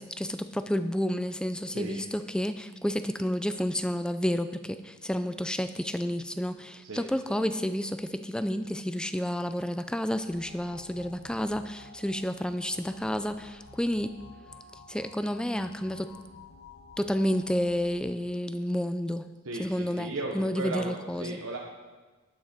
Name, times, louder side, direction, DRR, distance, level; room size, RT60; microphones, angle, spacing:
voice 1, 0.0-14.2 14.9-16.1 17.0-19.3 19.6-21.4, equal, 5° left, 10 dB, 0.4 m, -30 dB
voice 2, 1.6-2.0 6.8-7.4 19.4-21.6, right 2 dB, 80° right, -1 dB, 1.0 m, -36 dB
sound 1, 10.1-18.1, left 3 dB, 85° left, 1.0 m, -51 dB
12.0 x 8.9 x 4.4 m, 1.3 s
head